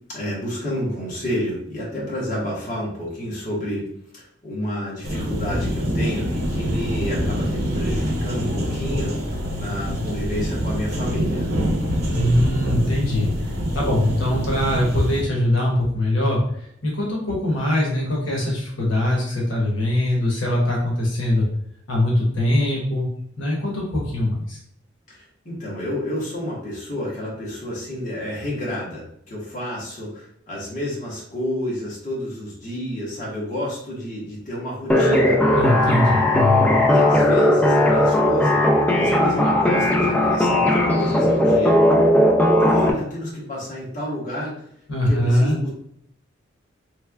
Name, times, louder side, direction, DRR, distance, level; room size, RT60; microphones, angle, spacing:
voice 1, 0.1-3.9 4.1-11.5 25.1-35.4 36.9-38.6 38.9-41.8 42.6-44.6 45.0-45.7, left 1 dB, 40° left, -5 dB, 1.2 m, -30 dB
sound 1, 5.0-15.2, equal, 55° right, 0.9 m, -25 dB
voice 2, 12.1-13.3 13.7-16.4 16.8-21.4 21.9-23.1 23.4-24.6 35.5-36.7 44.9-45.5, left 1 dB, 85° left, -3 dB, 1.1 m, -22 dB
sound 2, 34.9-42.9, left 1 dB, 10° left, 0.4 m, -17 dB
3.3 x 3.2 x 2.3 m, 0.70 s
head